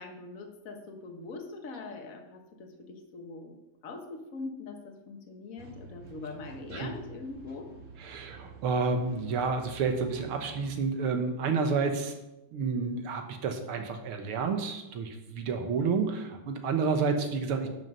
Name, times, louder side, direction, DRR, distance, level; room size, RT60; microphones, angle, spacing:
voice 1, 0.0-3.6 3.8-7.8, left 3 dB, 45° left, 4 dB, 1.5 m, -42 dB
sound 1, 5.6-10.8, right 3 dB, 40° right, 1.9 m, -50 dB
voice 2, 8.0-12.1 12.5-17.7, right 5 dB, 85° right, 5 dB, 2.1 m, -30 dB
11.5 x 6.6 x 5.5 m, 0.97 s
omnidirectional pair, 2.3 m